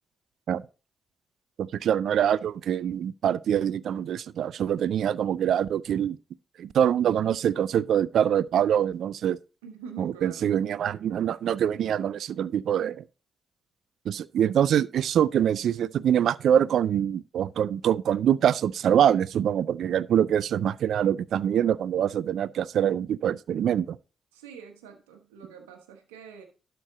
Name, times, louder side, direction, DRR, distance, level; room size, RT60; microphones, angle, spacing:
voice 1, 1.6-6.2 6.6-9.4 10.0-13.0 14.1-24.0, right 9 dB, 70° right, 0.3 m, -24 dB
voice 2, 9.6-10.5 24.3-26.4, right 6 dB, 90° right, 1.2 m, -45 dB
11.5 x 4.5 x 3.9 m
hypercardioid pair, 40°, 0 cm